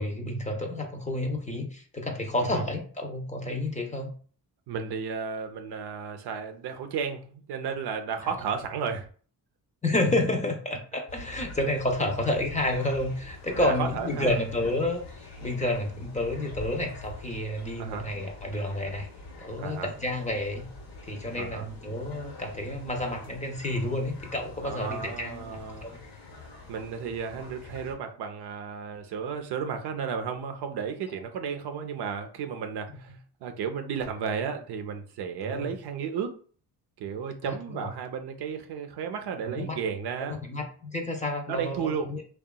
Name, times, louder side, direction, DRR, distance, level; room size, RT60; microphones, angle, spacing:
voice 1, 0.0-4.1 8.2-8.3 9.8-19.1 19.4-20.7 21.0-26.0 35.4-35.7 37.4-37.9 39.4-39.8 40.3-42.2, left 1 dB, 20° left, 0.5 m, -30 dB
voice 2, 4.7-9.1 13.6-14.4 17.8-18.1 19.6-19.9 21.3-21.7 24.6-26.0 26.7-36.4 37.0-40.4 41.4-42.1, right 6 dB, 70° right, 0.5 m, -33 dB
sound 1, 11.1-27.9, left 3 dB, 65° left, 1.0 m, -45 dB
2.7 x 2.3 x 2.2 m
cardioid pair, 75°, 41 cm